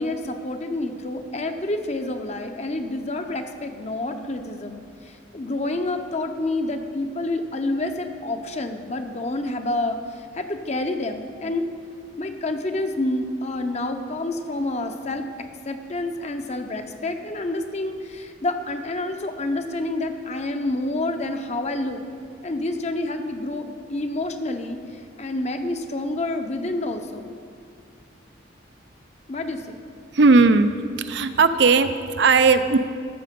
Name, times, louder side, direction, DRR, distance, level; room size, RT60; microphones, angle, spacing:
voice 1, 0.0-11.7 12.2-15.3 15.6-22.0 22.4-27.3 29.3-29.8, left 2 dB, 35° left, 6 dB, 0.7 m, -28 dB
voice 2, 30.1-30.7 31.0-32.8, right 4 dB, 65° right, 10 dB, 0.5 m, -17 dB
14.0 x 6.7 x 5.3 m, 2.2 s
head